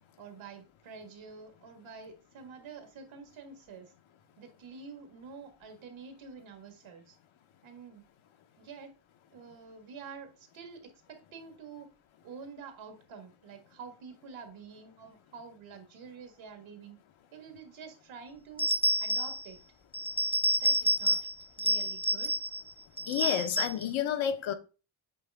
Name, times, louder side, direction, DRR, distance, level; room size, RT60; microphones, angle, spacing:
voice 1, 0.2-3.9 4.4-7.2 7.6-8.0 8.6-8.9 9.3-11.9 12.2-17.0 17.3-18.7 19.0-19.6 20.6-21.3 21.5-22.3, right 5 dB, 70° right, 1.8 m, -48 dB
sound 1, 18.6-19.4 19.9-21.3 21.6-22.6 23.0-23.8, right 1 dB, 10° left, 0.5 m, -29 dB
voice 2, 23.1-24.5, left 9 dB, 70° left, 1.0 m, -30 dB
8.4 x 3.3 x 3.4 m
cardioid pair, 105°, 49 cm